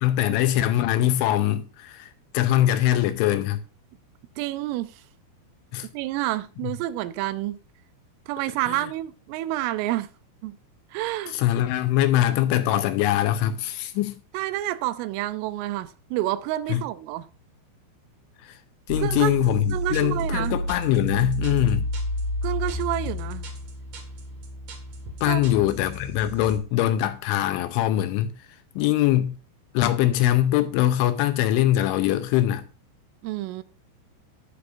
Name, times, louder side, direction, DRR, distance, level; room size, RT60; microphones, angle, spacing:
voice 1, 0.0-3.6 5.7-5.9 6.6-6.7 8.7-8.9 11.3-14.2 16.7-16.8 18.4-18.6 18.9-21.9 25.2-28.3 28.8-29.4 29.7-32.6, left 13 dB, 80° left, 3.0 m, -22 dB
voice 2, 4.4-5.0 5.9-7.6 8.3-10.1 10.4-10.6 10.9-11.4 14.3-17.3 19.0-19.4 19.7-20.6 22.4-23.5 25.2-25.4 33.2-33.6, right 15 dB, 85° right, 3.2 m, -29 dB
sound 1, 18.9-26.6, equal, 50° right, 2.3 m, -30 dB
18.5 x 6.6 x 2.6 m
omnidirectional pair, 5.7 m